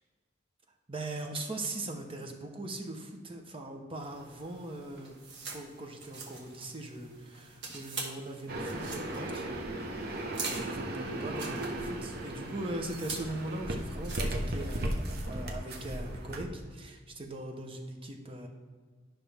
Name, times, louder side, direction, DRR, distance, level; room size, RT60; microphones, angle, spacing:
voice 1, 0.9-5.2 5.5-9.5 10.1-10.2 10.5-18.5, right 2 dB, 30° right, 2 dB, 0.8 m, -40 dB
sound 1, 4.0-15.3, right 4 dB, 70° right, 1.5 m, -45 dB
sound 2, 8.5-16.4, right 1 dB, 55° right, 0.9 m, -36 dB
11.0 x 5.8 x 3.4 m, 1.5 s
head